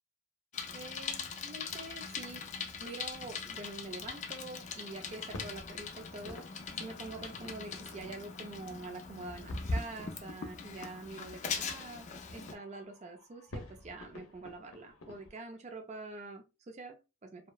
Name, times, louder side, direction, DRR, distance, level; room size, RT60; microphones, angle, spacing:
Bicycle, 0.5-12.5, left 4 dB, 35° left, 0.3 m, -41 dB
voice 1, 0.7-2.4 2.8-6.5 6.8-17.5, right 2 dB, 35° right, 0.4 m, -46 dB
sound 1, 5.0-15.3, left 2 dB, 90° left, 0.6 m, -52 dB
2.8 x 2.1 x 2.3 m
head